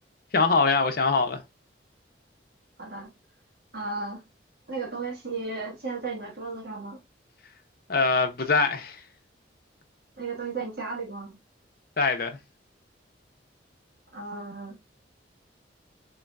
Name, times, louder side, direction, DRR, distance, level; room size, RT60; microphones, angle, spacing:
voice 1, 0.3-1.4 7.9-9.0 12.0-12.4, left 4 dB, 50° left, 0.7 m, -23 dB
voice 2, 2.8-3.1 3.7-4.2 4.7-7.0 10.2-11.4 14.1-14.8, right 4 dB, 55° right, 1.4 m, -34 dB
3.9 x 3.9 x 2.2 m
head